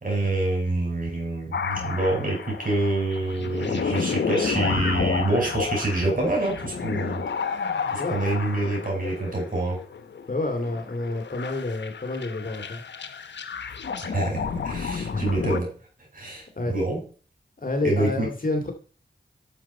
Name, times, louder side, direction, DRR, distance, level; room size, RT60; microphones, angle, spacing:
voice 1, 0.0-7.2 7.5-9.8 14.0-15.7 16.1-17.0 17.8-18.3, right 2 dB, 50° right, 0 dB, 6.0 m, -26 dB
sound 1, 1.5-15.6, left 6 dB, 80° left, 0.9 m, -31 dB
voice 2, 10.3-12.8 15.1-15.3 16.6-16.7 17.6-18.7, left 2 dB, 50° left, 5 dB, 2.4 m, -28 dB
10.5 x 7.1 x 4.3 m, 0.40 s
cardioid pair, 45°, 18 cm